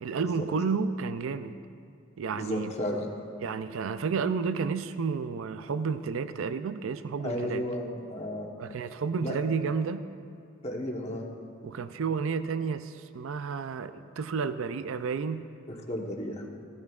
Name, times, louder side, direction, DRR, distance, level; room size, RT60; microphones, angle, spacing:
voice 1, 0.0-1.6 2.2-2.7 3.4-7.6 8.6-10.1 11.6-15.5, right 5 dB, 80° right, 12 dB, 0.4 m, -31 dB
voice 2, 2.3-3.0 7.2-8.5 9.2-9.3 10.6-11.2 15.7-16.4, left 1 dB, 30° left, 0 dB, 1.1 m, -33 dB
15.0 x 14.0 x 2.4 m, 2.3 s
head